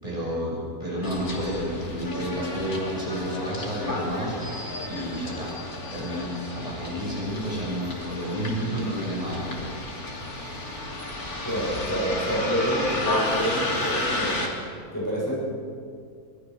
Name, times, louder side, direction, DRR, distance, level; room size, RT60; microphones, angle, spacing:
voice 1, 0.0-5.5 5.9-9.7, equal, 25° right, -6 dB, 6.8 m, -30 dB
Bus, 1.0-14.5, left 2 dB, 75° left, 3.5 m, -32 dB
voice 2, 11.4-14.4 14.9-15.3, equal, 10° left, -6 dB, 7.6 m, -27 dB
25.5 x 19.0 x 6.4 m, 2.2 s
omnidirectional pair, 1.6 m